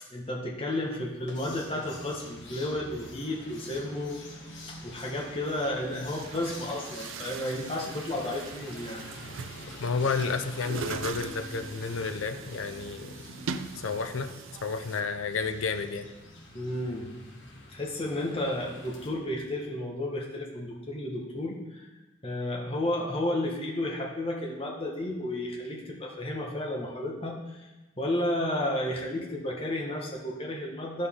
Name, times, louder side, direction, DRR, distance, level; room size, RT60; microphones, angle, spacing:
voice 1, 0.1-4.2 4.8-9.0 16.5-17.1 17.7-21.9 22.2-27.7 28.0-31.1, left 1 dB, 30° left, -2 dB, 1.3 m, -32 dB
sound 1, 1.0-19.1, left 1 dB, 60° left, 1.6 m, -46 dB
Chatter / Gurgling / Tap, 5.1-5.2 5.9-15.0, right 6 dB, 80° right, 0.5 m, -41 dB
voice 2, 9.8-13.1 13.8-14.3 14.6-16.1, left 4 dB, 85° left, 8 dB, 0.6 m, -31 dB
11.0 x 6.6 x 3.7 m, 1.1 s
head